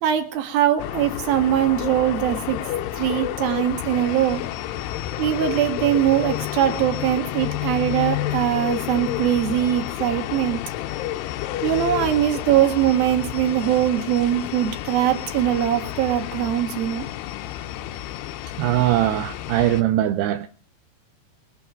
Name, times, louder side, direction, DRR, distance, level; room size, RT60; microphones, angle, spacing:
voice 1, 0.0-2.6 3.0-4.4 5.2-10.6 11.6-17.0, right 11 dB, 60° right, 3.1 m, -21 dB
sound 1, 0.8-19.8, left 13 dB, 85° left, 3.3 m, -30 dB
voice 2, 18.6-20.5, right 13 dB, 80° right, 2.5 m, -21 dB
23.0 x 8.8 x 4.5 m
omnidirectional pair, 5.4 m